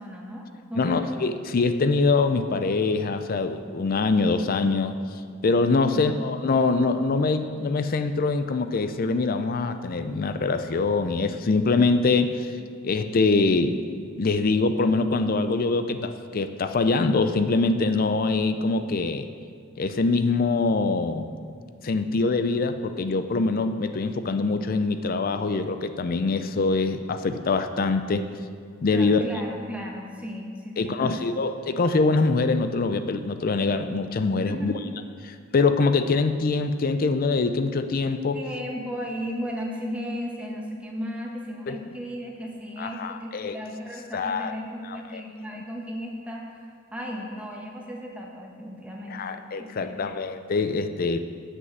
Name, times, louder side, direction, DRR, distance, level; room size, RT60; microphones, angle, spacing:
voice 1, 0.0-1.2 5.8-6.0 28.9-31.4 34.4-34.8 38.3-49.3 49.6-50.1, equal, 5° right, -1 dB, 1.3 m, -35 dB
voice 2, 0.7-5.0 5.4-12.5 12.8-19.3 19.8-21.3 21.8-28.3 28.8-29.2 30.8-34.7 35.2-38.4 41.7-41.8 42.8-43.6 44.1-44.5 44.8-45.2 45.6-45.7 49.1-51.2, left 3 dB, 45° left, 9 dB, 0.4 m, -24 dB
8.0 x 6.2 x 7.7 m, 2.1 s
head